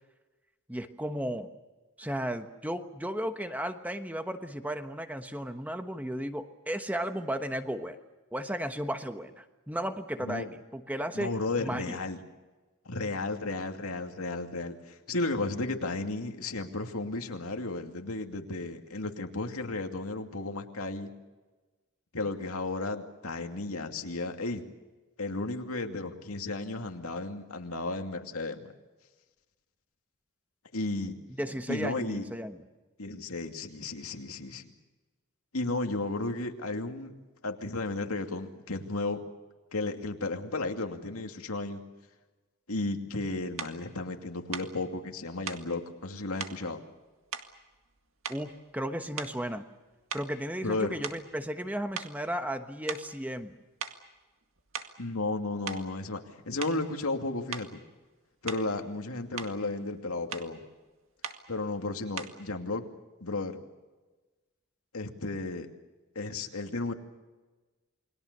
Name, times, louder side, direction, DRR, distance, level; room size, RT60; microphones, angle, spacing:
voice 1, 0.7-1.5 2.0-8.0 8.3-11.3 11.6-12.0 31.4-32.6 48.3-49.6 50.1-53.6, equal, 5° right, 7 dB, 1.2 m, -34 dB
voice 2, 11.1-12.2 12.9-21.1 22.1-24.6 25.2-28.7 30.7-31.1 31.7-32.2 33.0-34.7 35.5-37.1 37.4-39.2 39.7-41.8 42.7-46.8 50.6-50.9 55.0-57.8 58.4-60.6 61.5-62.8 63.2-63.6 64.9-65.7 66.1-66.9, left 2 dB, 90° left, 4 dB, 2.5 m, -34 dB
sound 1, 43.6-43.8 44.5-44.7 45.5-45.7 46.4-46.6 47.3-47.9 48.2-48.6 49.1-49.5 50.1-51.7 51.9-52.2 52.9-53.1 53.8-54.0 54.6-55.0 55.7-55.9 56.6-56.9 57.5-57.7 58.5-58.8 59.1-59.6 60.3-60.5 61.2-61.5 62.2-62.4, right 6 dB, 65° right, 2.0 m, -39 dB
29.0 x 22.0 x 6.8 m, 1.2 s
head